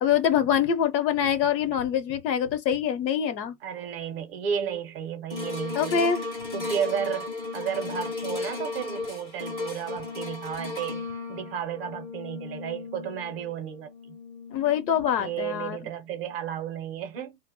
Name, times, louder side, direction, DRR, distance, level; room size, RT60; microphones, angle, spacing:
voice 1, 0.0-3.6 5.8-6.2 14.5-15.9, left 8 dB, 80° left, 0.8 m, -24 dB
voice 2, 3.6-6.1 6.5-14.2 15.2-17.4, right 8 dB, 40° right, 0.5 m, -33 dB
sound 1, 5.3-15.7 16.2-16.3, left 3 dB, 10° left, 0.4 m, -36 dB
2.1 x 2.0 x 3.4 m
hypercardioid pair, 130°, 50 cm